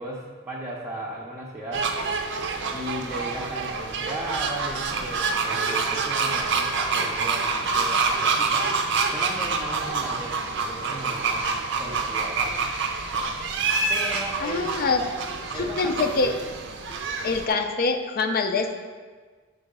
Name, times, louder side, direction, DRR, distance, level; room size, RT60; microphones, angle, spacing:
voice 1, 0.0-1.9 2.7-8.8 9.1-11.5 11.7-12.6 13.9-14.7 15.0-16.3, right 1 dB, 10° right, -5 dB, 0.6 m, -36 dB
sound 1, 1.7-17.5, right 4 dB, 60° right, 0.6 m, -27 dB
voice 2, 14.4-15.0 15.6-16.3 17.2-18.8, left 4 dB, 50° left, 7 dB, 0.5 m, -24 dB
5.5 x 3.9 x 5.2 m, 1.5 s
head